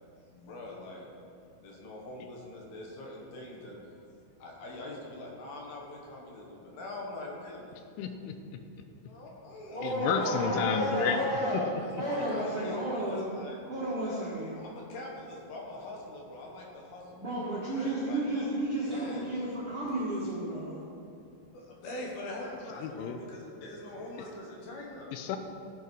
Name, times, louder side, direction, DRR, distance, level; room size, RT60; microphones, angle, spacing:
voice 1, 0.3-1.1 1.6-3.8 4.4-7.7 9.0-11.5 11.8-13.6 14.5-18.3 18.8-19.3 21.5-25.1, left 1 dB, 65° left, -2 dB, 3.1 m, -43 dB
voice 2, 8.0-8.6 9.8-11.2 11.5-11.6 11.9-12.0 22.8-23.2 25.1-25.4, left 7 dB, 85° left, 7 dB, 3.2 m, -31 dB
voice 3, 9.7-11.7 11.9-13.2 13.7-14.5 17.1-20.8, right 1 dB, 45° right, -9 dB, 1.7 m, -32 dB
16.5 x 8.1 x 4.8 m, 2.7 s
omnidirectional pair, 5.5 m